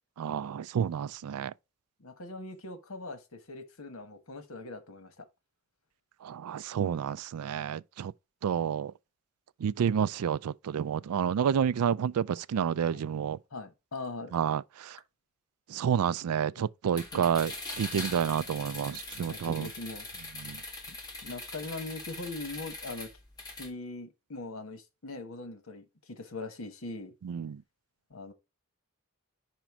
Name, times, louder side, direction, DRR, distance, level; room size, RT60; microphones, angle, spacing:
voice 1, 0.2-1.5 6.2-8.1 8.4-8.9 9.6-13.4 14.3-15.0 15.7-19.7 20.4-20.6 27.2-27.6, right 8 dB, 90° right, 0.3 m, -30 dB
voice 2, 2.0-5.3 13.5-14.3 16.6-16.7 17.1-17.3 19.3-20.1 20.9-21.0 21.2-23.1 23.6-27.1 28.1-28.3, left 2 dB, 75° left, 1.2 m, -41 dB
sound 1, 16.9-23.7, left 2 dB, 15° left, 1.9 m, -42 dB
5.1 x 4.4 x 5.9 m
head